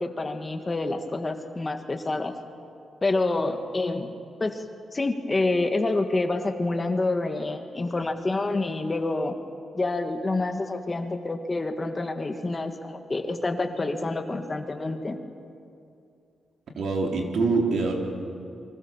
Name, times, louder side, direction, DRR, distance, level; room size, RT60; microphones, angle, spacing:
voice 1, 0.0-2.3 3.0-4.6 4.9-9.3 9.7-15.2, left 2 dB, 20° left, 6 dB, 1.6 m, -27 dB
voice 2, 16.8-17.9, right 3 dB, 65° right, 1 dB, 4.0 m, -24 dB
29.5 x 24.5 x 7.2 m, 2.5 s
wide cardioid pair, 145°, 0 cm